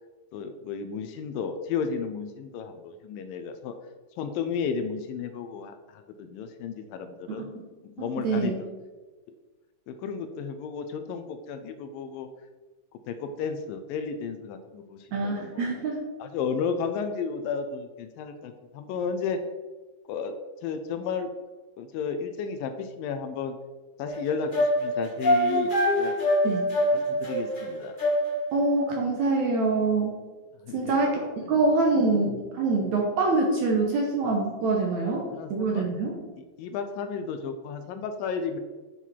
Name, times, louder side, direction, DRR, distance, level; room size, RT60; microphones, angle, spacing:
voice 1, 0.3-3.7 4.2-7.5 7.9-8.7 9.9-12.3 13.1-15.7 16.2-19.4 20.1-20.3 20.6-21.3 21.8-23.6 24.0-26.2 26.9-28.0 30.6-31.0 35.1-35.8 36.6-38.6, left 6 dB, 80° left, 7 dB, 2.2 m, -33 dB
voice 2, 8.0-8.6 15.1-16.0 26.4-26.7 28.5-30.2 30.7-31.2 31.5-36.2, right 3 dB, 65° right, -1 dB, 2.0 m, -25 dB
sound 1, 24.1-28.6, equal, 30° left, 0.8 m, -24 dB
8.3 x 5.7 x 4.5 m, 1.3 s
omnidirectional pair, 4.2 m